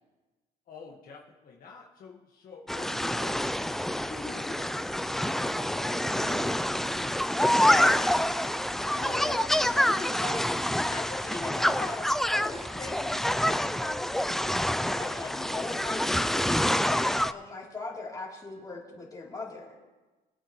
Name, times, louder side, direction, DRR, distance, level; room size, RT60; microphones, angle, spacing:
voice 1, 0.7-4.6, left 5 dB, 55° left, -2 dB, 1.6 m, -50 dB
sound 1, 2.7-17.3, left 1 dB, ahead, 0.4 m, -27 dB
voice 2, 4.0-4.6 8.9-10.5 10.9-16.5 16.9-19.7, left 3 dB, 20° left, -3 dB, 3.3 m, -40 dB
sound 2, 5.1-10.1, right 6 dB, 90° right, 1.2 m, -50 dB
22.0 x 9.1 x 3.1 m, 1.2 s
cardioid pair, 110°, 17 cm